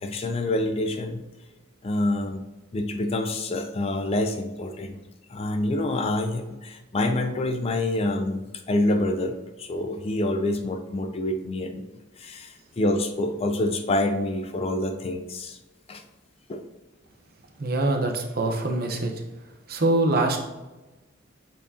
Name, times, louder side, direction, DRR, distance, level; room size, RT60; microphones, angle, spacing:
voice 1, 0.0-1.2 1.8-2.4 2.7-5.0 5.3-11.9 12.2-15.6 15.9-16.0 16.5-16.6, left 1 dB, 30° left, 6 dB, 0.4 m, -27 dB
voice 2, 17.6-19.1 19.7-20.4, right 2 dB, 50° right, 3 dB, 0.8 m, -24 dB
8.1 x 4.4 x 2.8 m, 1.1 s
head